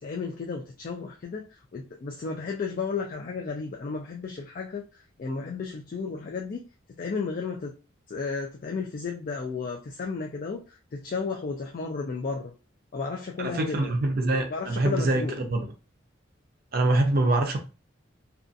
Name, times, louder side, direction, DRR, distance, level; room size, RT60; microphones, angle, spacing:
voice 1, 0.0-6.6 7.0-7.7 8.1-12.5 12.9-13.9 14.5-15.4, left 4 dB, 40° left, 0.3 m, -33 dB
voice 2, 13.4-15.6 16.7-17.6, right 2 dB, 45° right, 0.5 m, -24 dB
2.5 x 2.3 x 2.5 m
head